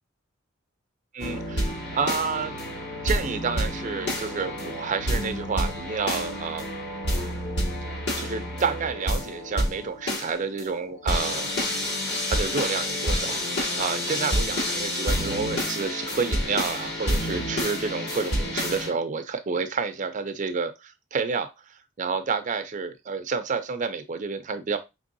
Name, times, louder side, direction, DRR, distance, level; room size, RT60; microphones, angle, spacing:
voice 1, 1.1-2.6 3.0-6.7 8.2-11.5 12.3-13.4 13.8-24.8, right 5 dB, 40° right, 9 dB, 0.5 m, -29 dB
sound 1, 1.2-18.9, equal, 60° left, 1.7 m, -29 dB
5.3 x 3.3 x 2.6 m, 0.23 s
head